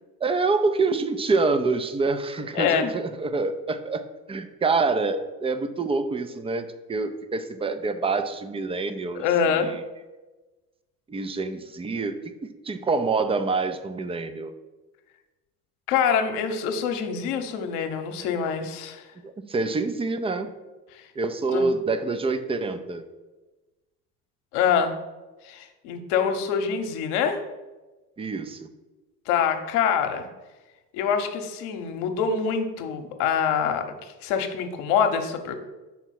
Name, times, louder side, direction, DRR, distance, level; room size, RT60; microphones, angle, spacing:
voice 1, 0.2-9.8 11.1-12.3 12.6-14.5 19.2-20.5 21.2-23.0 28.2-28.7, right 3 dB, 15° right, 10 dB, 0.4 m, -26 dB
voice 2, 2.5-2.9 9.1-9.7 15.9-19.0 20.9-21.0 21.5-21.7 24.5-24.9 25.4-27.4 29.3-30.3 30.9-33.8 34.2-35.5, left 7 dB, 65° left, 6 dB, 1.0 m, -25 dB
5.9 x 4.5 x 5.9 m, 1.2 s
hypercardioid pair, 65°, 48 cm